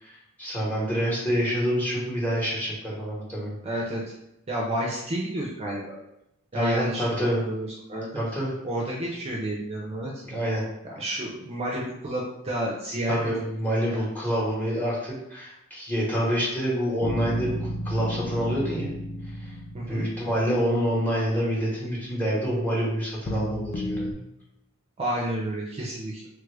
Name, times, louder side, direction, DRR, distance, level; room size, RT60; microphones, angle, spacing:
voice 1, 0.0-3.6 6.5-7.4 8.1-8.5 10.2-10.6 13.1-18.9 19.4-19.5 19.9-24.1, equal, 10° left, -5 dB, 1.1 m, -27 dB
voice 2, 3.6-4.0 4.5-6.0 6.5-8.2 8.6-10.2 11.0-13.2 19.7-20.1 25.0-26.3, right 1 dB, 30° right, -3 dB, 0.5 m, -30 dB
sound 1, 17.0-22.1 23.3-24.1, equal, 35° left, 0.4 m, -33 dB
3.3 x 2.4 x 3.3 m, 0.83 s
head